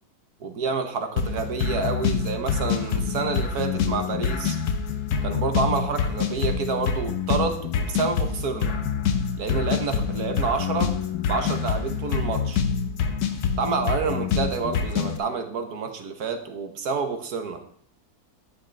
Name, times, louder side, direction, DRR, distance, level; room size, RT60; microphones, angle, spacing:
voice 1, 0.4-4.6 5.2-8.8 9.4-10.9 11.3-12.6 13.6-17.6, right 4 dB, 60° right, 6 dB, 1.4 m, -28 dB
sound 1, 1.2-15.2, left 6 dB, 60° left, 1.3 m, -26 dB
11.5 x 8.8 x 3.3 m, 0.63 s
omnidirectional pair, 2.0 m